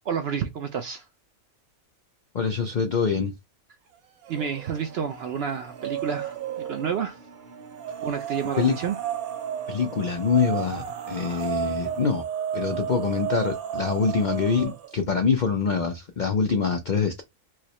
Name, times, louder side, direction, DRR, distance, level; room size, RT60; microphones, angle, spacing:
voice 1, 0.0-1.0 4.3-7.2 8.0-9.0, right 7 dB, 65° right, 0.6 m, -30 dB
voice 2, 2.3-3.3 8.6-8.8 9.7-12.2 12.5-17.2, left 5 dB, 85° left, 0.4 m, -25 dB
sound 1, 4.2-4.8 5.2-7.0 7.8-14.9, right 9 dB, 80° right, 1.1 m, -33 dB
sound 2, 4.6-12.0, right 4 dB, 40° right, 0.9 m, -48 dB
4.8 x 2.0 x 2.9 m
omnidirectional pair, 1.5 m